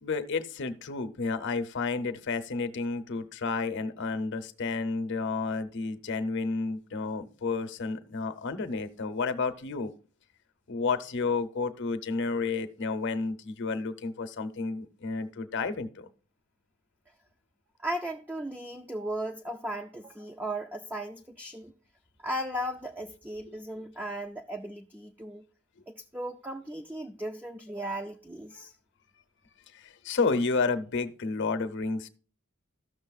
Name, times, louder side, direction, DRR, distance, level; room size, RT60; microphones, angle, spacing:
voice 1, 0.0-9.9 10.7-16.1 23.5-23.6 28.5-28.7 29.7-32.1, left 4 dB, 55° left, 0.7 m, -31 dB
voice 2, 17.8-21.7 22.2-25.4 25.9-28.7, right 1 dB, 10° right, 0.3 m, -36 dB
14.0 x 6.4 x 2.3 m
head